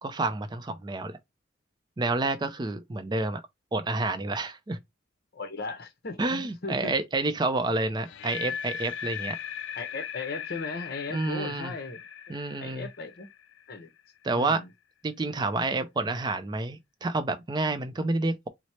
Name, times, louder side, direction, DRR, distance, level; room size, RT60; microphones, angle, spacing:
voice 1, 0.0-1.2 2.0-3.4 3.7-4.8 6.2-9.4 11.1-11.7 12.3-12.9 14.2-14.6 15.0-18.5, right 2 dB, 20° right, 0.4 m, -29 dB
voice 2, 5.3-6.9 9.7-12.4 12.6-13.3 13.7-13.9 14.3-14.7, left 3 dB, 55° left, 0.8 m, -37 dB
sound 1, 8.0-14.0, left 8 dB, 75° left, 0.4 m, -38 dB
3.1 x 2.0 x 4.1 m
head